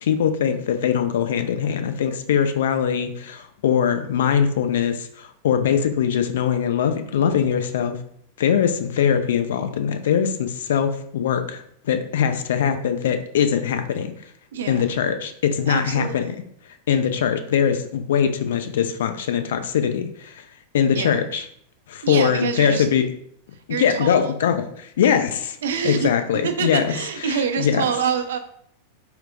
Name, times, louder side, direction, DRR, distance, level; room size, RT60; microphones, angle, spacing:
voice 1, 0.0-8.0 8.4-14.1 14.7-16.4 16.9-20.4 20.7-21.4 21.9-23.1 23.8-25.6 25.8-26.8 27.3-27.8, left 8 dB, 60° left, 8 dB, 0.3 m, -22 dB
voice 2, 14.5-14.9 15.7-16.3 20.9-21.2 22.0-22.9 23.7-24.3 25.6-26.1 26.4-28.4, right 7 dB, 60° right, 7 dB, 0.3 m, -26 dB
4.3 x 2.0 x 2.5 m, 0.67 s
figure-of-eight pair, 90°, 0 cm